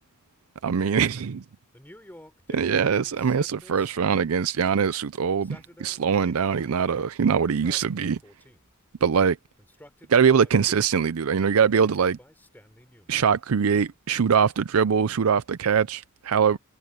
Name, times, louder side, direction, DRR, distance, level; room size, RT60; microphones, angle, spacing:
voice 1, 0.6-1.4 2.5-8.2 9.0-9.4 10.1-12.2 13.1-16.6, right 6 dB, 70° right, 0.5 m, -22 dB
Male speech man speaking, 1.7-4.3 5.3-7.0 7.4-8.7 9.6-11.1 11.7-13.2, left 1 dB, 10° left, 3.5 m, -50 dB
head